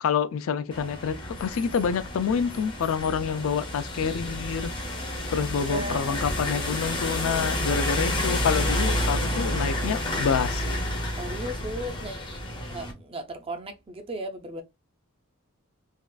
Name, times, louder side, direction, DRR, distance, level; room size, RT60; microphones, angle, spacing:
voice 1, 0.0-4.7 5.3-10.6, left 6 dB, 65° left, 0.3 m, -27 dB
sound 1, 0.7-12.9, left 1 dB, 20° left, 0.6 m, -30 dB
voice 2, 5.5-6.2 11.2-12.3 12.7-14.6, right 1 dB, 25° right, 0.5 m, -36 dB
3.5 x 2.4 x 2.3 m
head